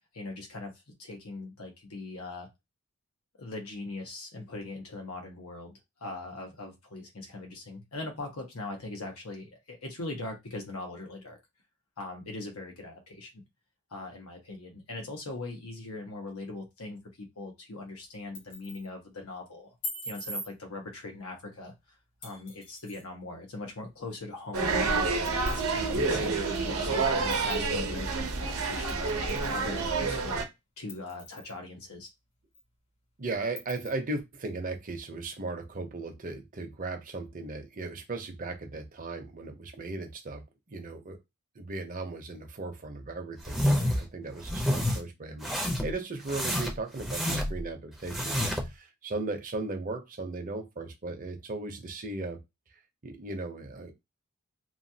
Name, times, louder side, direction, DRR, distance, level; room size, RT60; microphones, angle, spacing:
voice 1, 0.1-0.7 1.0-2.5 3.4-11.4 12.0-13.4 13.9-19.7 20.0-21.7 22.2-25.0 25.5-29.1 29.5-30.4 30.8-32.1, left 2 dB, 90° left, 2 dB, 1.0 m, -40 dB
sound 1, 18.1-18.9 19.8-20.5 22.2-23.0 24.5-24.6 25.2-25.6 26.3-26.4 27.3-27.6 28.9-29.6 30.0-30.1 30.9-31.6 32.1-32.2 32.5-32.6 33.6-33.9, left 1 dB, 55° left, 1.2 m, -41 dB
sound 2, 24.5-30.4, right 3 dB, 85° right, 0.7 m, -28 dB
voice 2, 33.2-40.4 40.7-41.2 41.5-52.4 53.0-53.9, right 3 dB, 40° right, 5 dB, 0.7 m, -37 dB
sound 3, 43.4-44.0 44.4-45.0 45.4-45.9 46.3-47.6 48.0-48.7, equal, ahead, 0.6 m, -28 dB
3.0 x 2.3 x 2.7 m, 0.21 s
head